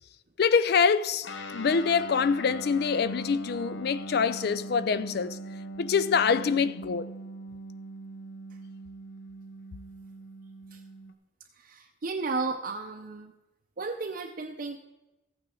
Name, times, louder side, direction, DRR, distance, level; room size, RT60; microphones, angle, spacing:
voice 1, 0.4-5.4 5.8-7.1, left 6 dB, 55° left, 0.4 m, -25 dB
Guitar, 1.2-11.1, right 1 dB, 80° left, 0.9 m, -41 dB
voice 2, 11.6-13.3 13.8-14.8, right 3 dB, 50° right, 0.6 m, -34 dB
14.0 x 8.8 x 3.7 m
head